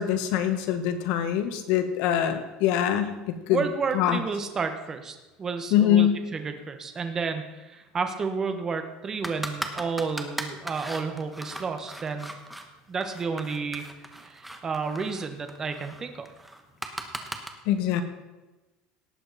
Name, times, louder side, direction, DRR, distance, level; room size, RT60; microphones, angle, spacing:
voice 1, 0.0-3.6 3.9-4.2 5.7-6.2 17.6-18.0, left 10 dB, 70° left, 8 dB, 1.4 m, -24 dB
voice 2, 3.5-12.3 12.9-13.8 14.2-16.3, right 5 dB, 25° right, 6 dB, 1.3 m, -31 dB
sound 1, 9.2-12.7 13.0-17.5, right 1 dB, 5° right, 1.1 m, -38 dB
18.0 x 7.6 x 4.2 m, 1.1 s
cardioid pair, 140°, 2 cm